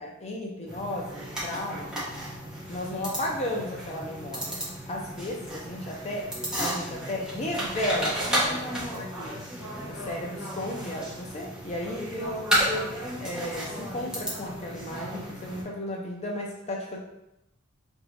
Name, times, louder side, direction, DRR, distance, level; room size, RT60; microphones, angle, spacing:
voice 1, 0.0-1.9 2.7-6.3 6.6-9.4 9.9-12.9 13.2-17.0, left 1 dB, 30° left, -1 dB, 0.5 m, -34 dB
sound 1, 0.7-15.6, equal, 5° right, 1.1 m, -33 dB
3.2 x 2.7 x 4.5 m, 0.87 s
head